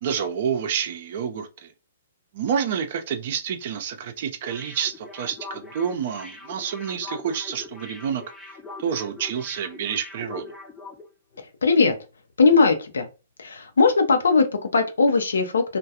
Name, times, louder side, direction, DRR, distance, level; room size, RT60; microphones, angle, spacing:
voice 1, 0.0-1.7 2.3-8.2 8.8-10.5, right 7 dB, 55° right, 0.5 m, -28 dB
sound 1, 4.4-11.1 11.3-11.5, left 3 dB, 10° left, 0.6 m, -42 dB
voice 2, 11.4-12.0 12.4-13.1 13.4-15.8, left 4 dB, 80° left, 0.5 m, -19 dB
2.3 x 2.2 x 2.7 m
hypercardioid pair, 125°, 0 cm